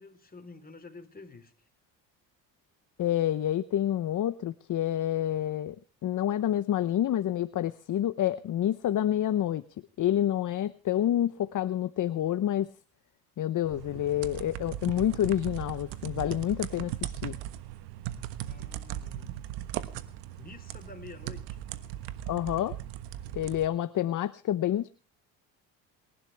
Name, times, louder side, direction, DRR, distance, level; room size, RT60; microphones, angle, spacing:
voice 1, 0.0-1.5 18.5-19.4 20.3-21.6, left 3 dB, 20° left, 4.0 m, -48 dB
voice 2, 3.0-5.8 6.0-9.6 10.0-12.7 13.4-17.3 22.3-22.7 23.3-24.9, left 11 dB, 50° left, 0.8 m, -28 dB
sound 1, 13.6-23.7, right 12 dB, 90° right, 1.4 m, -38 dB
28.5 x 12.0 x 3.4 m
supercardioid pair, 85°, 40 cm